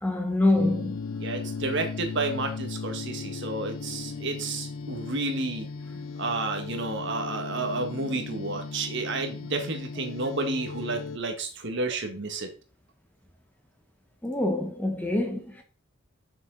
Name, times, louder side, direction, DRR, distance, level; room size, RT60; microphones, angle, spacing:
voice 1, 0.0-1.0 14.2-15.6, left 2 dB, 10° left, 1.1 m, -25 dB
sound 1, 0.6-11.2, left 4 dB, 70° left, 0.5 m, -37 dB
voice 2, 1.2-5.7 6.2-12.5, right 3 dB, 55° right, 1.6 m, -31 dB
7.3 x 6.4 x 3.9 m
head